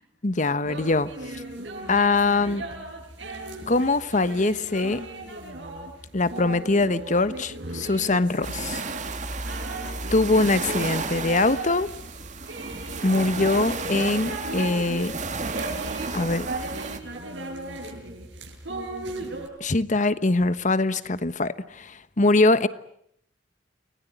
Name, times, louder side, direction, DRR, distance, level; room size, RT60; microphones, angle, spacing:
voice 1, 0.2-1.4 1.9-2.6 3.7-5.0 6.1-8.8 10.1-11.9 13.0-15.1 16.1-16.5 19.6-22.7, left 2 dB, 45° left, 14 dB, 1.2 m, -23 dB
sound 1, 0.6-19.5, right 2 dB, 80° right, 7.1 m, -37 dB
sound 2, 8.4-17.0, right 3 dB, 40° right, 2.0 m, -33 dB
30.0 x 20.5 x 9.3 m, 0.73 s
head